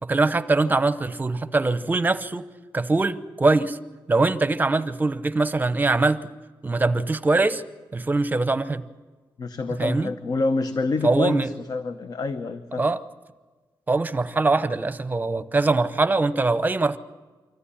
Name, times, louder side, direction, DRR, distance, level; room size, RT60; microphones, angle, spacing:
voice 1, 0.0-2.4 2.7-3.8 4.1-6.2 6.6-7.6 7.9-8.8 9.8-10.1 11.0-11.5 12.8-13.0 13.9-17.0, right 3 dB, 20° right, 12 dB, 0.8 m, -22 dB
voice 2, 9.4-12.8, left 3 dB, 50° left, 9 dB, 0.9 m, -27 dB
24.5 x 14.5 x 10.0 m, 1.3 s
wide cardioid pair, 155°, 8 cm